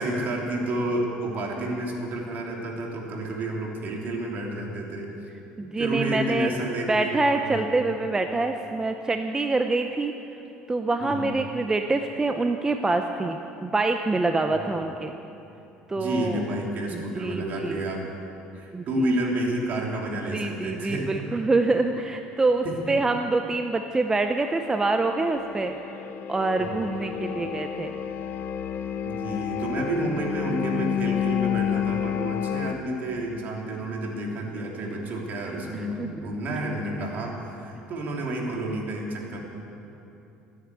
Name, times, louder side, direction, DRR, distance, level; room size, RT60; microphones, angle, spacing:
voice 1, 0.0-5.1 5.8-7.2 7.4-7.6 11.0-11.3 14.5-14.9 16.0-18.1 18.5-21.2 22.6-22.7 26.6-26.9 29.0-39.4, right 1 dB, 55° right, -1 dB, 3.1 m, -30 dB
voice 2, 5.6-6.5 6.9-10.1 10.7-15.1 15.9-16.4 16.9-17.8 18.7-18.8 20.3-25.8 26.3-27.9 35.7-36.1, right 3 dB, 15° right, 6 dB, 0.7 m, -25 dB
sound 1, 24.2-32.7, left 9 dB, 55° left, 0.6 m, -30 dB
14.5 x 9.7 x 8.3 m, 2.9 s
supercardioid pair, 105°, 4 cm